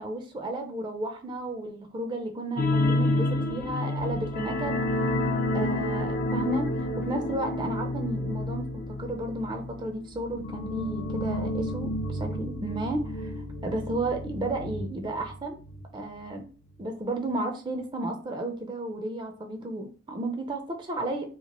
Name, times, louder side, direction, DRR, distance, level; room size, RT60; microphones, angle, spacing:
voice 1, 0.0-4.8 5.2-15.6 15.9-16.5 16.8-21.3, right 2 dB, 25° right, 4 dB, 0.4 m, -33 dB
sound 1, 2.6-15.8 16.1-16.3 16.7-16.8, left 1 dB, 45° left, 0.4 m, -30 dB
2.8 x 2.4 x 2.9 m, 0.39 s
head